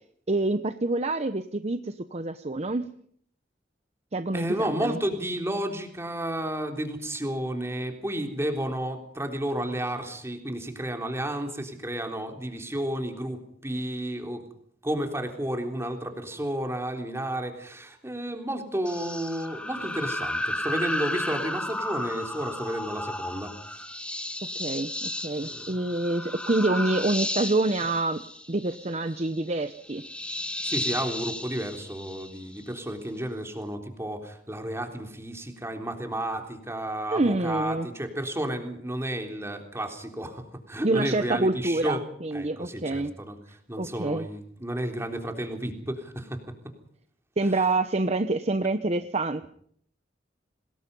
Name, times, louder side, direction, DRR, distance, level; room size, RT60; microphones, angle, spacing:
voice 1, 0.3-2.9 4.1-5.0 24.5-28.2 28.5-30.0 37.1-37.9 40.8-43.1 43.8-44.3 47.4-49.4, right 2 dB, 40° right, 10 dB, 0.9 m, -27 dB
voice 2, 4.3-14.4 14.8-23.5 25.4-25.6 30.6-42.0 42.3-43.4 43.7-46.4, right 1 dB, 15° right, 4 dB, 3.5 m, -32 dB
sound 1, 18.9-32.7, left 1 dB, 5° left, 1.6 m, -33 dB
26.5 x 20.5 x 5.5 m, 0.64 s
head